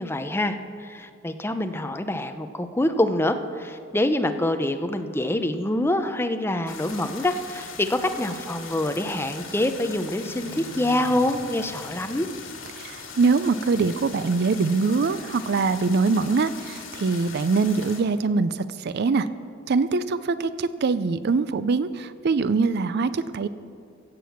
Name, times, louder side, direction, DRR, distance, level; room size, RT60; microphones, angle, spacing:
voice 1, 0.0-12.3, left 1 dB, 10° left, 8 dB, 0.6 m, -26 dB
sound 1, 6.7-18.0, left 5 dB, 75° left, 2.3 m, -41 dB
sound 2, 8.1-13.5, equal, 75° right, 1.7 m, -46 dB
voice 2, 12.7-19.3 19.7-23.5, right 4 dB, 55° right, 14 dB, 0.4 m, -23 dB
16.0 x 7.6 x 7.2 m, 2.3 s
head